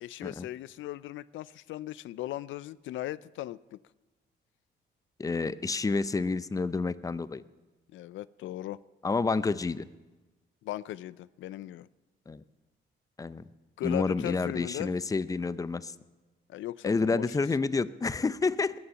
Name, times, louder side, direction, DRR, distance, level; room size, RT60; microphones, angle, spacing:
voice 1, 0.0-3.8 7.9-8.8 10.6-11.9 13.8-14.9 16.5-17.4, left 14 dB, 75° left, 19 dB, 0.4 m, -38 dB
voice 2, 5.2-7.4 9.0-9.9 12.3-12.4 13.2-13.4 13.8-15.9 16.8-18.7, left 4 dB, 15° left, 16 dB, 0.5 m, -29 dB
20.5 x 7.1 x 9.0 m, 1.1 s
cardioid pair, 90°, 20 cm